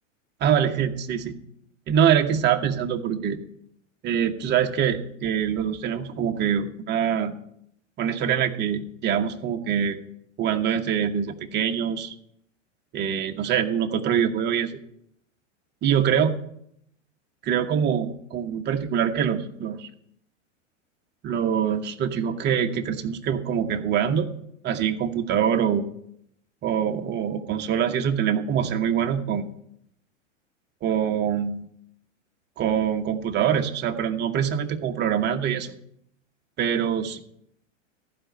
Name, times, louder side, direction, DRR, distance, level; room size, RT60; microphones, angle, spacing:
voice 1, 0.4-1.3 1.9-3.4 4.0-7.3 8.0-10.0 10.4-12.1 12.9-14.7 15.8-16.3 17.4-19.9 21.2-24.3 24.6-25.9 26.6-29.5 30.8-31.7 32.6-35.8 36.6-37.2, right 8 dB, 30° right, 4 dB, 1.2 m, -24 dB
15.0 x 5.2 x 9.0 m, 0.72 s
hypercardioid pair, 125°, 38 cm